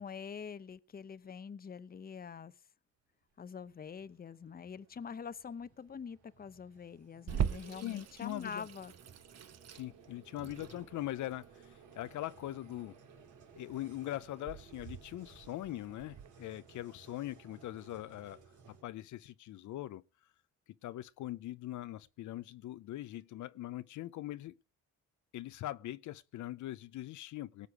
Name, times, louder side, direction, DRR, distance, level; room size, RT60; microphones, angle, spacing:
voice 1, 0.0-2.5 3.4-8.9, left 6 dB, 30° left, 0.8 m, -45 dB
Vehicle, 3.2-18.8, right 6 dB, 80° right, 4.0 m, -60 dB
Water tap faucet / Sink (filling or washing), 7.3-16.3, right 9 dB, 55° right, 1.2 m, -42 dB
voice 2, 7.8-8.7 9.7-13.0 13.6-18.4 18.7-20.0 20.8-24.5 25.3-27.7, left 14 dB, 70° left, 0.6 m, -42 dB
18.5 x 8.2 x 4.8 m
cardioid pair, 90°, 30 cm